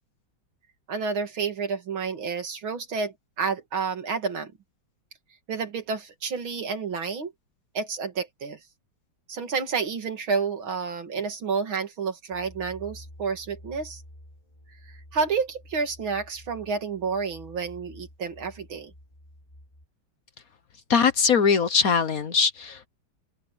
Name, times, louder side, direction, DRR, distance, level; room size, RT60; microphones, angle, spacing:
voice 1, 0.9-4.5 5.5-7.3 7.7-8.6 9.3-14.0 14.9-18.9, right 5 dB, 80° right, 3.1 m, -30 dB
sound 1, 12.3-19.9, left 1 dB, 15° left, 5.6 m, -49 dB
voice 2, 20.9-22.9, left 6 dB, 50° left, 1.4 m, -21 dB
open air
omnidirectional pair, 2.2 m